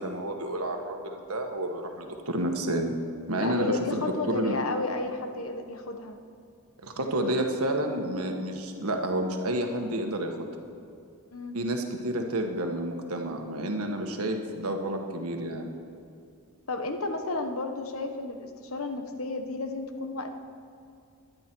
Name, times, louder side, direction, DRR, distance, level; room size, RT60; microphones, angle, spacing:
voice 1, 0.0-2.9 3.3-4.6 6.8-10.4 11.5-15.7, right 1 dB, 85° right, 3 dB, 1.5 m, -30 dB
voice 2, 3.4-6.2 11.3-11.6 16.7-20.3, left 3 dB, 70° left, 6 dB, 1.2 m, -32 dB
19.0 x 11.5 x 4.6 m, 2.4 s
head